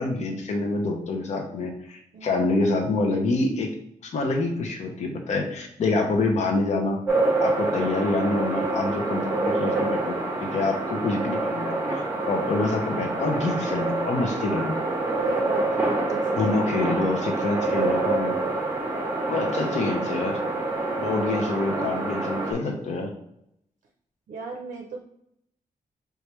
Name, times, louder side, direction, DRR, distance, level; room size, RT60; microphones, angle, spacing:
voice 1, 0.0-3.7 4.0-7.0 7.4-10.1 10.4-14.9 16.3-18.4 19.2-20.4 21.0-23.1, left 2 dB, 55° left, 3 dB, 0.6 m, -26 dB
voice 2, 2.1-2.5 15.1-16.9 21.7-21.9 24.3-25.0, right 4 dB, 65° right, 0 dB, 0.6 m, -37 dB
sound 1, 7.1-22.5, right 2 dB, 15° right, 1.1 m, -27 dB
4.6 x 3.3 x 3.1 m, 0.76 s
wide cardioid pair, 175°, 14 cm